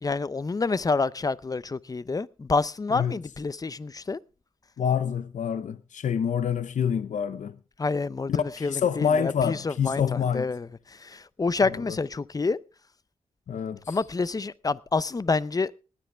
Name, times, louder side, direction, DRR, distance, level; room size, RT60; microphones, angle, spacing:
voice 1, 0.0-4.2 7.8-12.6 13.9-15.7, left 4 dB, 30° left, 0.6 m, -28 dB
voice 2, 4.8-7.6 8.6-10.5 13.5-14.0, left 7 dB, 80° left, 0.7 m, -27 dB
19.0 x 10.0 x 3.3 m
cardioid pair, 70°, 13 cm